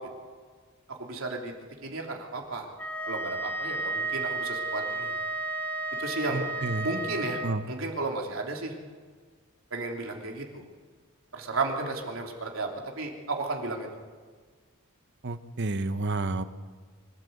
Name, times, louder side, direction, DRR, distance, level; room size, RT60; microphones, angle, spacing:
voice 1, 0.9-1.5 1.8-2.7 3.0-5.1 6.0-6.5 6.8-7.4 7.7-8.7 9.7-10.6 11.3-12.7 13.0-13.9, right 3 dB, 80° right, 1 dB, 3.1 m, -33 dB
Wind instrument woodwind instrument, 2.8-7.6, right 2 dB, 10° left, 2.2 m, -32 dB
voice 2, 6.3-6.9 7.4-7.6 15.2-16.4, right 2 dB, 60° right, 11 dB, 1.0 m, -30 dB
25.0 x 13.5 x 7.9 m, 1.5 s
head